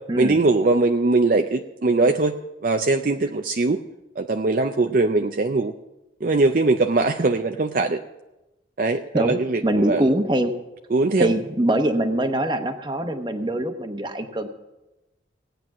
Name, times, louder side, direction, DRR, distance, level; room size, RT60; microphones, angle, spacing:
voice 1, 0.2-3.8 4.2-5.7 6.2-8.0 8.8-10.0 10.9-11.3, right 3 dB, 45° right, 5 dB, 0.5 m, -21 dB
voice 2, 9.1-10.6 11.2-14.5, right 1 dB, 25° right, 7 dB, 1.0 m, -23 dB
17.5 x 9.1 x 6.1 m, 1.0 s
head